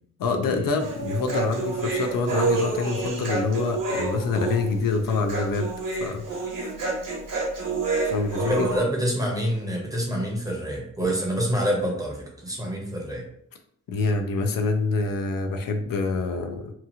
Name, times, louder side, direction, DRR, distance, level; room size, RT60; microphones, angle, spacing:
voice 1, 0.2-5.7 6.0-6.2 8.0-8.7 13.9-16.7, left 4 dB, 75° left, 5 dB, 0.5 m, -26 dB
Human voice, 0.8-8.8, right 3 dB, 70° right, 1.0 m, -28 dB
voice 2, 8.4-13.2, equal, 10° right, -2 dB, 0.7 m, -27 dB
2.9 x 2.3 x 2.7 m, 0.70 s
wide cardioid pair, 130°, 34 cm